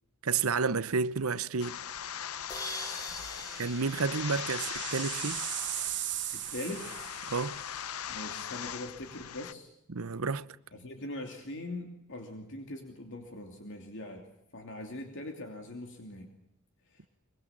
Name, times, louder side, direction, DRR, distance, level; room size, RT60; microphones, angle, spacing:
voice 1, 0.2-1.8 3.6-5.4 7.3-7.6 9.9-10.5, right 5 dB, 75° right, 0.8 m, -30 dB
sound 1, 1.6-9.5, left 9 dB, 85° left, 0.8 m, -40 dB
sound 2, 2.5-5.3, left 2 dB, 15° left, 2.5 m, -43 dB
sound 3, 3.0-7.6, right 14 dB, 55° right, 1.3 m, -38 dB
voice 2, 6.3-6.8 8.1-9.7 10.7-14.3 14.5-16.3 16.9-17.0, left 1 dB, 60° left, 3.0 m, -41 dB
24.5 x 23.0 x 7.4 m
head